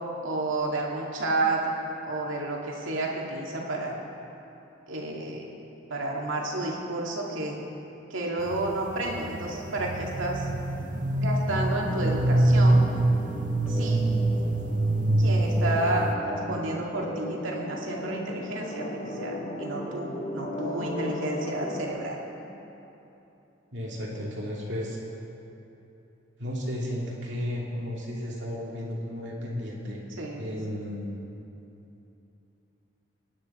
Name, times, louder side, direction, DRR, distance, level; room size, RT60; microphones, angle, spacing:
voice 1, 0.2-1.7 2.1-4.0 4.9-5.4 5.9-7.6 8.1-10.5 11.2-12.8 13.7-14.1 15.2-18.9 19.1-22.2 30.1-30.6, right 2 dB, 80° right, -2 dB, 2.1 m, -31 dB
sound 1, 8.4-16.1, right 1 dB, 40° right, 0.7 m, -25 dB
sound 2, 11.5-21.9, left 1 dB, 30° left, 1.0 m, -36 dB
voice 2, 23.7-25.0 26.4-30.0 30.4-31.2, equal, 60° right, -4 dB, 2.6 m, -33 dB
21.5 x 10.0 x 4.3 m, 3.0 s
head